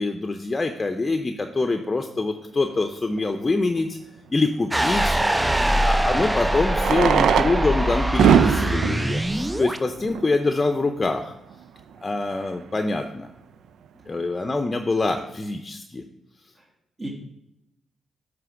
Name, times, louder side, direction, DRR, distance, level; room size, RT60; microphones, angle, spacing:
voice 1, 0.0-4.0 4.3-5.2 5.8-11.3 12.0-13.3 14.1-16.0, left 3 dB, 30° left, 7 dB, 0.7 m, -25 dB
Fireworks, 3.2-3.3 5.5-5.6 6.7-10.5 11.2-11.3 11.5-11.6 11.8-11.9 12.4-12.7, right 8 dB, 75° right, 0.4 m, -22 dB
sound 1, 4.7-9.8, right 1 dB, 15° right, 0.5 m, -23 dB
voice 2, 5.4-5.9 17.0-17.1, right 2 dB, 35° right, -3 dB, 1.9 m, -35 dB
9.1 x 3.4 x 6.0 m, 0.87 s
hypercardioid pair, 45°, 0 cm